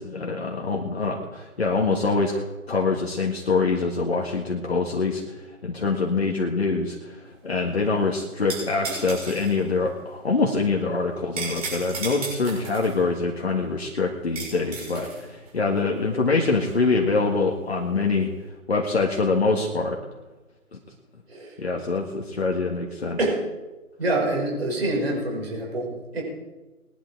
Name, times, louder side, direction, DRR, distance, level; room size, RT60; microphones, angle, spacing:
voice 1, 0.0-18.3 18.7-20.0 21.6-23.2, left 3 dB, 45° left, 0 dB, 1.9 m, -25 dB
sound 1, 7.3-18.4, right 3 dB, 25° right, 6.6 m, -37 dB
voice 2, 24.0-26.2, right 2 dB, 45° right, -1 dB, 6.4 m, -26 dB
21.0 x 11.0 x 4.7 m, 1.1 s
figure-of-eight pair, 160°, 44 cm